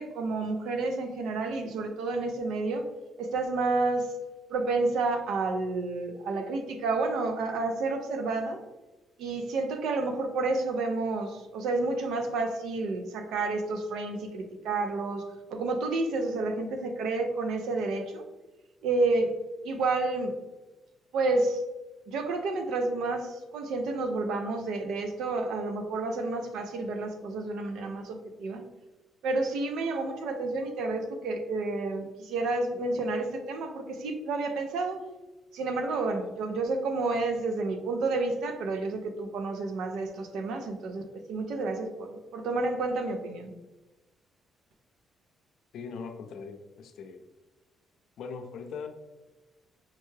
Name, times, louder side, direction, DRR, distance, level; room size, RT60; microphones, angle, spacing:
voice 1, 0.0-2.9 3.2-4.1 4.5-8.6 9.2-18.2 18.8-19.3 19.6-20.3 21.1-21.6 22.1-28.6 29.2-35.0 35.5-43.5, right 3 dB, 85° right, 5 dB, 0.5 m, -30 dB
voice 2, 45.7-47.2 48.2-48.9, left 5 dB, 75° left, 7 dB, 0.4 m, -40 dB
5.7 x 2.2 x 3.2 m, 1.1 s
cardioid pair, 90°, 0 cm